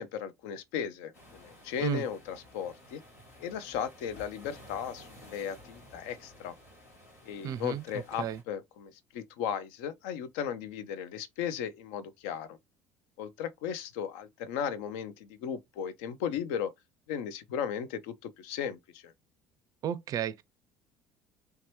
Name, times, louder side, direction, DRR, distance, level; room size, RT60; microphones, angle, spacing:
voice 1, 0.0-3.0 3.4-6.5 7.2-12.6 13.2-16.7 17.1-19.1, left 8 dB, 70° left, 0.5 m, -36 dB
sound 1, 1.1-8.4, left 1 dB, 85° left, 1.4 m, -54 dB
voice 2, 7.4-7.8 8.2-8.4 19.8-20.4, right 10 dB, 50° right, 0.4 m, -32 dB
3.3 x 2.8 x 3.0 m
hypercardioid pair, 60°, 8 cm